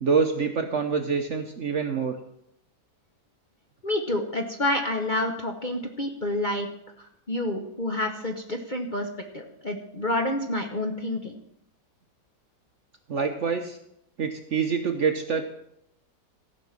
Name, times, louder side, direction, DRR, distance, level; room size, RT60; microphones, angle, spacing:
voice 1, 0.0-2.2 13.1-13.8 14.2-15.6, right 5 dB, 55° right, 6 dB, 0.9 m, -26 dB
voice 2, 3.8-6.7 7.0-9.1 9.3-11.3, left 1 dB, 35° left, 3 dB, 0.9 m, -28 dB
15.0 x 5.3 x 7.4 m, 0.77 s
omnidirectional pair, 1.9 m